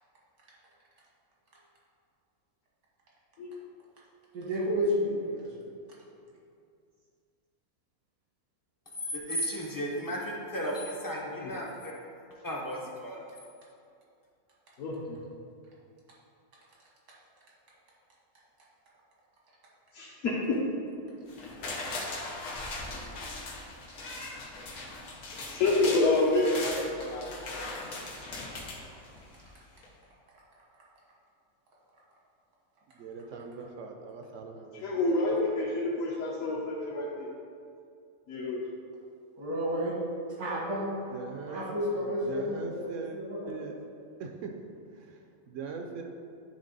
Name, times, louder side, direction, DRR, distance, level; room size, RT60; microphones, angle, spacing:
voice 1, 3.4-3.7 11.4-11.5 14.8-15.2 19.9-20.6 25.3-27.3 34.8-37.3 38.3-38.6, left 2 dB, 65° left, -4 dB, 1.1 m, -28 dB
voice 2, 4.3-5.7 39.3-40.0 40.3-40.9 41.5-42.8 43.1-43.6, equal, 85° right, -4 dB, 2.0 m, -31 dB
voice 3, 9.1-11.7 12.4-13.3, equal, 25° left, -2 dB, 0.4 m, -34 dB
sound 1, 21.3-29.4 29.8-29.9, left 2 dB, 90° left, 1.5 m, -39 dB
voice 4, 32.9-34.8 41.1-41.7 42.3-43.2 43.5-44.7 44.9-46.0, right 5 dB, 65° right, 3 dB, 0.8 m, -41 dB
9.8 x 3.5 x 3.9 m, 2.4 s
omnidirectional pair, 1.6 m